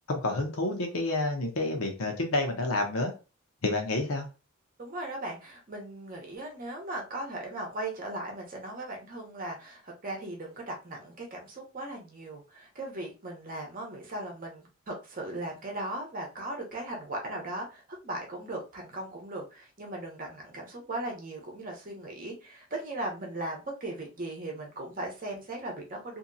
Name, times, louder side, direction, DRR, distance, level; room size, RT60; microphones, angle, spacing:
voice 1, 0.1-3.1 3.6-4.3, left 2 dB, 70° left, 3 dB, 0.8 m, -29 dB
voice 2, 4.8-26.2, right 1 dB, 40° right, 0 dB, 0.8 m, -38 dB
2.8 x 2.7 x 2.6 m, 0.31 s
head